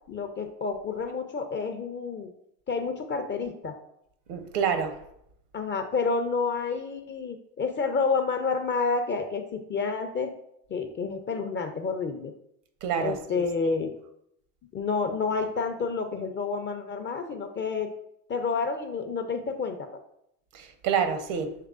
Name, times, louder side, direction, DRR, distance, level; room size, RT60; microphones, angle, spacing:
voice 1, 0.1-2.3 2.7-3.8 5.5-10.3 10.7-12.3 13.0-13.9 14.7-17.9 18.3-19.9, left 4 dB, 25° left, 0.4 m, -29 dB
voice 2, 4.3-5.0 12.8-13.4 20.5-21.6, right 7 dB, 65° right, 0.8 m, -28 dB
6.5 x 3.1 x 2.4 m
hypercardioid pair, 60°, 48 cm